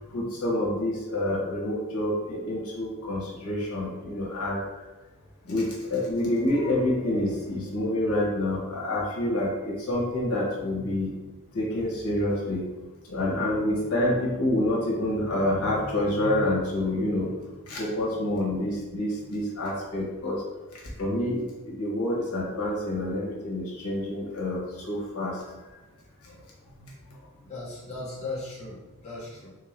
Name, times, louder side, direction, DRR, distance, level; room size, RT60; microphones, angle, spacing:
voice 1, 0.1-4.6 5.4-11.1 11.5-12.7 13.1-17.3 17.7-20.4 21.0-25.4 26.8-26.9, left 1 dB, 80° left, -4 dB, 1.0 m, -27 dB
voice 2, 27.4-29.5, left 2 dB, 30° left, -7 dB, 1.0 m, -37 dB
3.5 x 2.5 x 3.3 m, 1.1 s
head